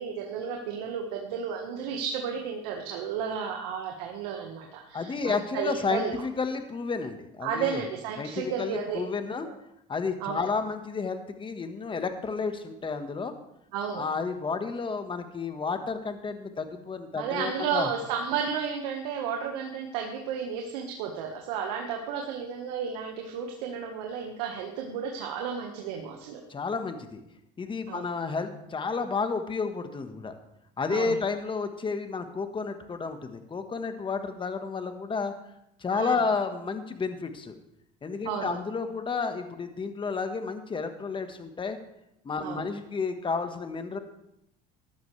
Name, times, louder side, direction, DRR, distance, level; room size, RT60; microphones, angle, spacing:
voice 1, 0.0-6.1 7.4-9.0 9.4-9.5 10.2-10.4 13.7-14.0 17.2-26.4 27.9-28.1 30.9-31.2 35.9-36.2 38.2-38.6 42.4-42.7, right 7 dB, 85° right, 1 dB, 1.5 m, -33 dB
voice 2, 4.9-7.8 8.2-9.5 9.9-13.3 13.9-17.9 26.5-27.2 27.6-30.3 30.8-35.3 35.8-37.5 38.0-41.8 42.2-44.0, left 4 dB, 25° left, 8 dB, 1.4 m, -31 dB
14.5 x 11.5 x 3.3 m, 0.81 s
supercardioid pair, 95°, 20 cm